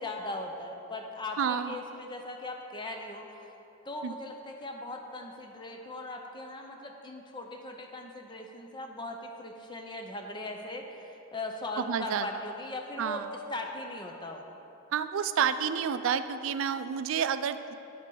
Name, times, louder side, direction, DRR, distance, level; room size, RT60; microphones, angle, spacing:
voice 1, 0.0-3.3 3.8-13.2 13.5-14.5, left 2 dB, 20° left, 3 dB, 0.5 m, -39 dB
voice 2, 1.4-1.8 4.0-4.2 11.8-12.3 13.0-13.3 14.9-17.7, right 7 dB, 70° right, 11 dB, 0.3 m, -29 dB
8.8 x 5.2 x 5.4 m, 3.0 s
head